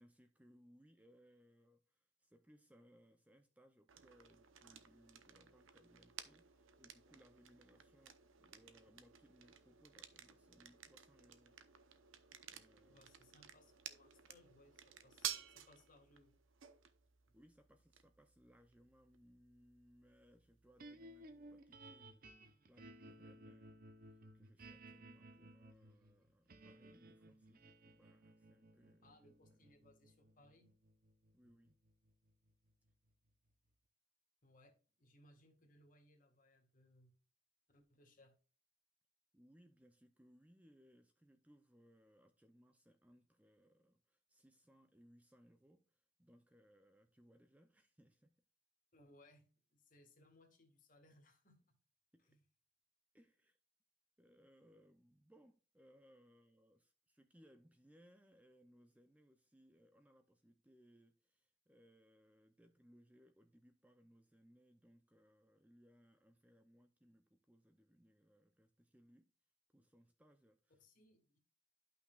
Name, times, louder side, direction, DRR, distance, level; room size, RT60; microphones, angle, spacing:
voice 1, 0.0-11.6 12.5-13.1 17.3-29.6 31.3-31.8 39.3-48.3 52.1-52.4 53.1-53.6 54.2-69.3 69.7-70.8, equal, 5° right, 0.5 m, -68 dB
sound 1, 3.9-21.6, right 10 dB, 85° right, 0.8 m, -54 dB
voice 2, 12.9-16.4 17.3-17.4 29.0-30.7 34.4-37.1 37.7-38.4 48.9-51.8 52.2-52.4 70.8-71.4, left 1 dB, 45° left, 1.8 m, -68 dB
sound 2, 20.8-33.1, right 1 dB, 45° right, 0.7 m, -59 dB
12.0 x 5.8 x 2.3 m
head